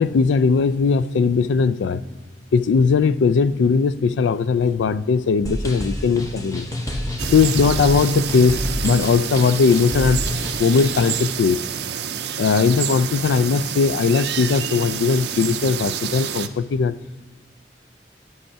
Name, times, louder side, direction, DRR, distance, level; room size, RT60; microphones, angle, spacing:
voice 1, 0.0-2.0 2.5-6.7 7.3-10.3 10.6-11.7 12.4-17.0, left 5 dB, 90° left, 0.3 m, -19 dB
sound 1, 5.5-11.3, left 1 dB, 20° left, 0.9 m, -28 dB
sound 2, 7.2-16.5, right 9 dB, 65° right, 0.5 m, -28 dB
9.7 x 5.3 x 5.7 m
head